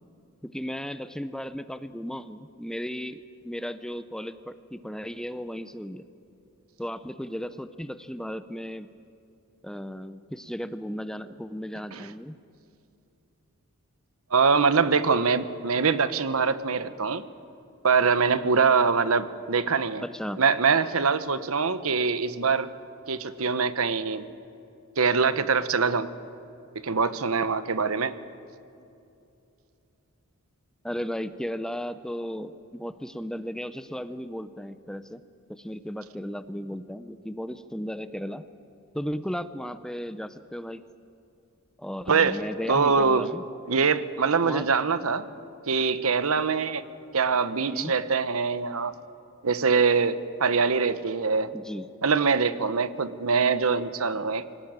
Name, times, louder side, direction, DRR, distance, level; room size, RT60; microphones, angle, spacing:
voice 1, 0.4-6.1 6.8-8.9 9.6-12.4 20.0-20.4 30.8-35.2 35.5-38.4 38.9-40.8 41.8-43.4 44.4-44.6 47.6-47.9 51.5-51.9, equal, 5° left, 12 dB, 0.5 m, -35 dB
voice 2, 14.3-17.2 17.8-20.0 20.4-22.7 23.1-24.3 25.0-26.1 26.8-28.1 42.1-42.4 42.7-43.3 43.7-45.3 45.7-46.8 47.1-48.9 49.4-51.5 52.0-54.5, right 5 dB, 75° right, 13 dB, 1.0 m, -23 dB
24.0 x 18.5 x 8.9 m, 2.7 s
head